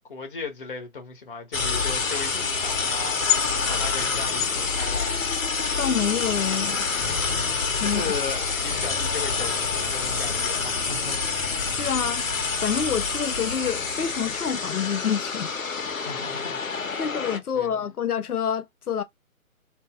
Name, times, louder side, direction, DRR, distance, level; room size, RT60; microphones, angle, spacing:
voice 1, 0.1-5.3 7.8-11.5 15.9-17.0 17.5-17.8, left 4 dB, 35° left, 1.0 m, -37 dB
sound 1, 1.5-17.4, left 5 dB, 65° left, 0.9 m, -27 dB
voice 2, 5.8-6.9 7.8-8.1 11.7-15.5 17.0-19.0, left 7 dB, 90° left, 0.6 m, -27 dB
2.6 x 2.0 x 3.6 m
figure-of-eight pair, 140°, 44 cm